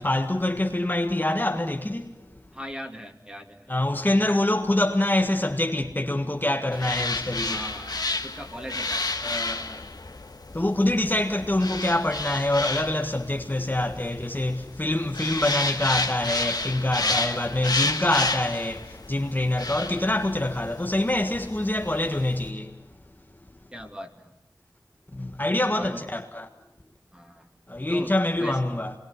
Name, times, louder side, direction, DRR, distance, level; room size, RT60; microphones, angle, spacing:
voice 1, 0.0-2.2 3.7-7.6 9.2-9.8 10.5-22.7 25.1-26.5 27.7-28.9, left 1 dB, 25° left, 1.6 m, -25 dB
voice 2, 2.5-3.7 6.1-6.2 7.5-9.2 9.4-9.7 17.0-17.5 23.7-24.3 25.7-26.0 27.1-27.5 27.9-28.1 28.4-28.6, equal, 15° right, 2.8 m, -39 dB
sound 1, 6.7-22.5, left 3 dB, 65° left, 1.6 m, -31 dB
26.5 x 21.5 x 8.2 m
wide cardioid pair, 55°, 7 cm